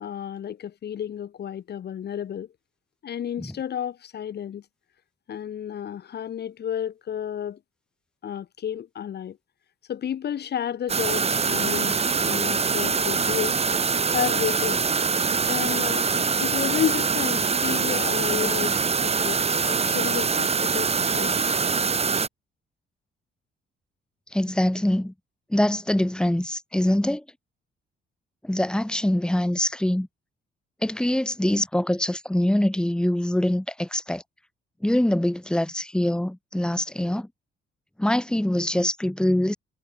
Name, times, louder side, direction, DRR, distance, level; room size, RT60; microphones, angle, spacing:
voice 1, 0.0-2.5 3.0-4.6 5.3-7.6 8.2-9.3 9.9-13.5 14.1-14.8 15.5-18.8 19.0-19.3 19.6-21.3, left 9 dB, 55° left, 1.4 m, -31 dB
sound 1, 10.9-22.3, right 5 dB, 30° right, 1.3 m, -24 dB
voice 2, 18.3-18.8 24.3-25.1 25.5-27.2 28.4-30.1 30.8-34.2 34.8-37.3 38.0-39.6, left 1 dB, 5° left, 1.8 m, -24 dB
cardioid pair, 90°, 20 cm